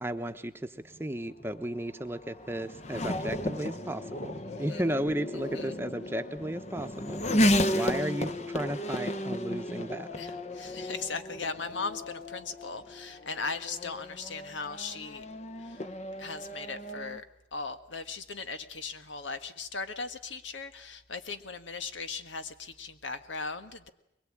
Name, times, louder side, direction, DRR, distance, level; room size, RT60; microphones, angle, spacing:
voice 1, 0.0-10.2, right 1 dB, 15° right, 7 dB, 1.0 m, -34 dB
Race car auto racing / Accelerating revving vroom, 0.9-17.2, left 1 dB, 35° left, 1.0 m, -33 dB
voice 2, 4.4-4.8 5.3-5.8 7.6-7.9 10.2-15.2 15.6-15.9 16.2-17.2 17.5-23.9, left 4 dB, 90° left, 9 dB, 1.6 m, -38 dB
22.5 x 22.0 x 8.8 m, 0.84 s
head